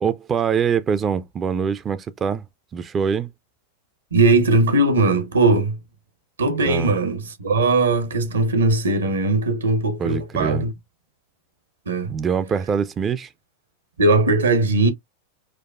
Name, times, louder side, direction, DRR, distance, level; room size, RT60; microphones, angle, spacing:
voice 1, 0.0-2.4 2.7-3.3 6.6-6.9 10.0-10.7 12.1-13.3, right 6 dB, 25° right, 0.3 m, -24 dB
voice 2, 4.1-5.8 6.4-10.7 11.9-12.2 14.0-14.9, right 2 dB, 70° right, 0.8 m, -19 dB
4.5 x 2.2 x 2.3 m
figure-of-eight pair, 90°, 0 cm